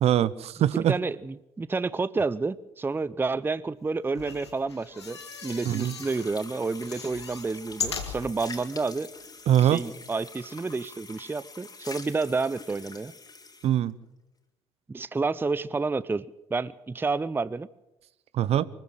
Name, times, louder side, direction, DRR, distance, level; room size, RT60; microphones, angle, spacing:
voice 1, 0.0-1.0 5.7-5.9 9.5-9.8 13.6-13.9 18.3-18.7, right 11 dB, 50° right, 18 dB, 0.8 m, -22 dB
voice 2, 0.7-9.1 9.6-13.1 14.9-16.2 16.5-17.7, right 3 dB, 15° right, 18 dB, 0.6 m, -30 dB
sound 1, 4.1-6.3 6.7-8.6 9.2-9.3 9.5-9.6, left 5 dB, 85° left, 2.0 m, -38 dB
sound 2, 5.0-13.7, left 4 dB, 30° left, 3.6 m, -45 dB
24.0 x 14.5 x 7.8 m, 0.94 s
figure-of-eight pair, 50°, 14 cm